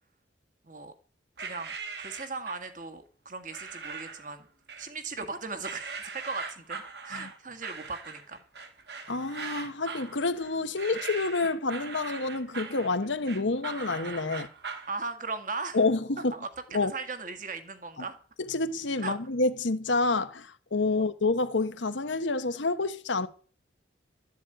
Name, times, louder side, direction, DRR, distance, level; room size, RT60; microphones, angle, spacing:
voice 1, 1.4-4.4 4.8-8.4 14.9-15.8 16.4-18.2 19.0-19.2 20.9-21.1, right 4 dB, 45° right, 1.8 m, -38 dB
sound 1, 1.4-2.7 3.5-4.3 4.7-5.3 5.6-14.9, right 5 dB, 60° right, 1.8 m, -40 dB
voice 2, 9.1-14.5 15.7-16.3 16.7-16.9 18.5-23.3, left 3 dB, 80° left, 1.1 m, -28 dB
13.0 x 7.5 x 9.0 m
head